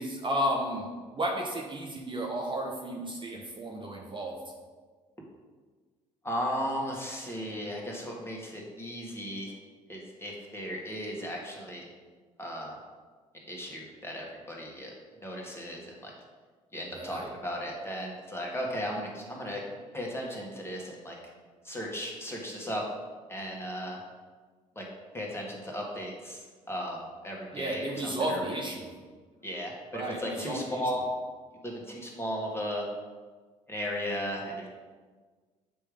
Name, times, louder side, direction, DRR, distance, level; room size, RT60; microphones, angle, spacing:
voice 1, 0.0-4.4 16.9-17.3 27.5-28.9 29.9-30.8, right 1 dB, 30° right, -1 dB, 1.0 m, -33 dB
voice 2, 6.2-9.5 9.9-11.9 12.4-12.8 13.5-14.9 15.2-16.1 16.7-19.6 19.9-21.2 21.6-22.8 23.3-24.0 24.8-24.9 25.1-28.4 29.4-31.0 31.6-32.9 33.7-34.7, equal, 15° left, -2 dB, 2.0 m, -36 dB
7.8 x 3.3 x 5.1 m, 1.4 s
hypercardioid pair, 55°, 17 cm